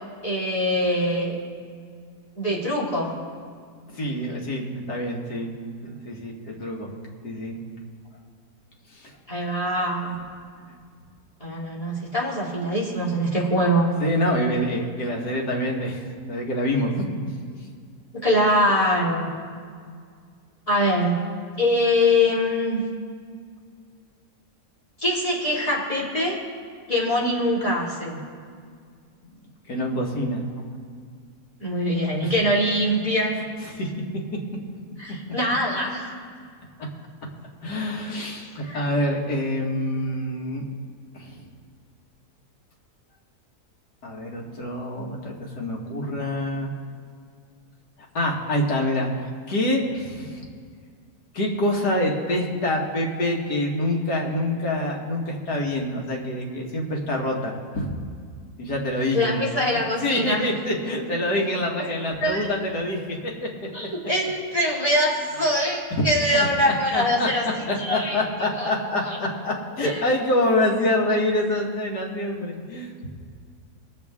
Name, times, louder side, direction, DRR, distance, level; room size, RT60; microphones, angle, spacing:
voice 1, 0.2-1.4 2.4-3.2 9.3-10.2 11.4-13.9 18.2-19.3 20.7-21.1 21.6-22.8 25.0-26.4 26.9-28.2 31.6-33.4 35.0-36.2 38.6-38.9 59.1-60.4 62.2-62.5 63.7-67.4 67.8-68.2 68.6-68.7 69.0-69.2 69.8-70.0, left 1 dB, 20° left, -6 dB, 2.5 m, -23 dB
voice 2, 3.9-5.5 5.8-6.9 7.2-7.6 8.9-9.1 14.0-16.0 16.3-17.2 29.7-30.4 32.2-32.3 33.6-33.9 37.6-40.6 41.1-41.4 44.0-46.7 48.1-49.1 49.5-50.4 51.3-57.9 58.6-59.5 60.0-63.2 66.3-67.3 67.7-72.9, left 1 dB, 85° left, -1 dB, 2.2 m, -26 dB
22.5 x 7.8 x 3.6 m, 2.1 s
omnidirectional pair, 1.7 m